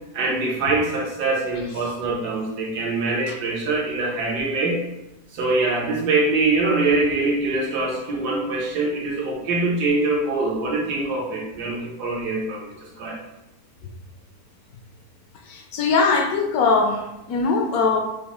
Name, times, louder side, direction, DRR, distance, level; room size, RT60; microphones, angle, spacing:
voice 1, 0.1-4.8 5.3-13.2, right 3 dB, 75° right, -2 dB, 1.5 m, -24 dB
voice 2, 15.5-18.0, left 4 dB, 70° left, 3 dB, 1.0 m, -21 dB
6.0 x 2.1 x 3.0 m, 0.91 s
omnidirectional pair, 1.8 m